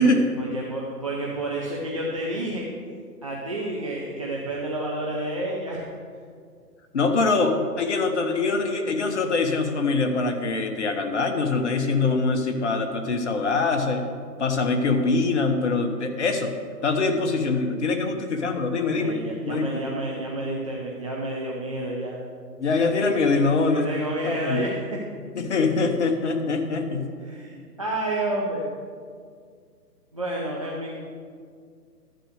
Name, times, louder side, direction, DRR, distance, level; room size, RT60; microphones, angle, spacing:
voice 1, 0.0-2.7 3.2-5.9 19.0-22.2 23.7-24.8 27.3-28.6 30.1-31.0, right 1 dB, 20° right, -4 dB, 0.6 m, -30 dB
voice 2, 6.9-14.1 14.4-16.5 16.8-19.2 19.5-19.7 22.6-24.0 24.2-24.6 25.3-27.1, left 3 dB, 45° left, 5 dB, 1.2 m, -23 dB
11.5 x 7.6 x 6.6 m, 2.1 s
figure-of-eight pair, 150°, 50 cm